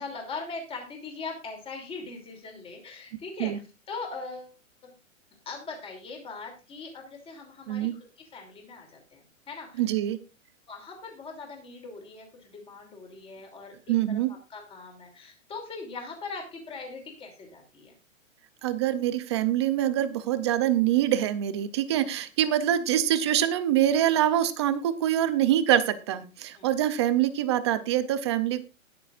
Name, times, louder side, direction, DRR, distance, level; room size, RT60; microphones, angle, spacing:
voice 1, 0.0-3.6 3.9-4.5 4.8-4.9 5.4-7.9 8.2-9.8 10.7-13.8 14.1-17.9 26.5-26.7, left 4 dB, 15° left, 2 dB, 3.0 m, -40 dB
voice 2, 9.8-10.2 13.9-14.3 18.6-28.6, right 11 dB, 20° right, 12 dB, 0.5 m, -25 dB
20.0 x 6.8 x 2.5 m, 0.31 s
hypercardioid pair, 155°, 40 cm